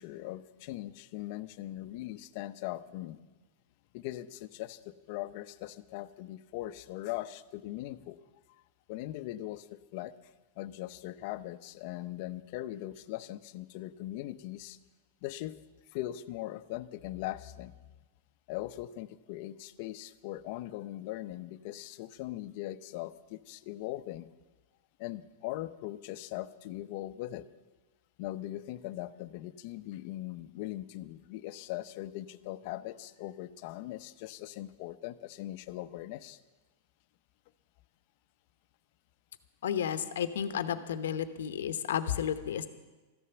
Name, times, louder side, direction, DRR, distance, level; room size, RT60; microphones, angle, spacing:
voice 1, 0.0-3.2 3.9-8.2 8.9-10.1 10.6-14.8 15.2-15.6 15.9-17.7 18.5-24.3 25.0-27.4 28.2-36.4, left 15 dB, 55° left, 13 dB, 0.6 m, -40 dB
voice 2, 39.6-42.7, left 9 dB, 90° left, 10 dB, 0.9 m, -32 dB
14.0 x 11.0 x 7.0 m, 1.2 s
supercardioid pair, 140°, 0 cm